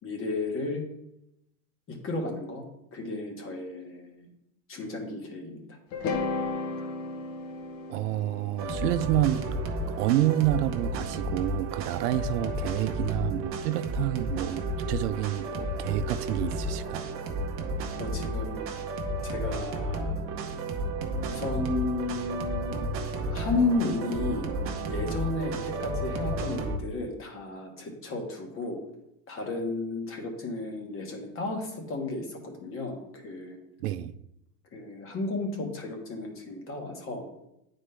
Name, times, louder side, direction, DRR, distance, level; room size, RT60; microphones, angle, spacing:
voice 1, 0.0-0.8 1.9-2.7 2.9-4.3 4.7-5.8 17.9-18.6 19.2-20.1 21.2-22.9 23.2-24.5 24.9-28.8 29.3-33.6 34.7-37.3, left 2 dB, 30° left, 1.3 m, -33 dB
sound 1, 5.9-10.1, left 3 dB, 50° left, 1.0 m, -34 dB
voice 2, 7.9-9.5 9.9-17.1 33.8-34.1, right 14 dB, 90° right, 0.6 m, -28 dB
sound 2, 8.6-26.8, right 1 dB, 30° right, 0.8 m, -32 dB
8.9 x 4.2 x 3.3 m
supercardioid pair, 140°, 46 cm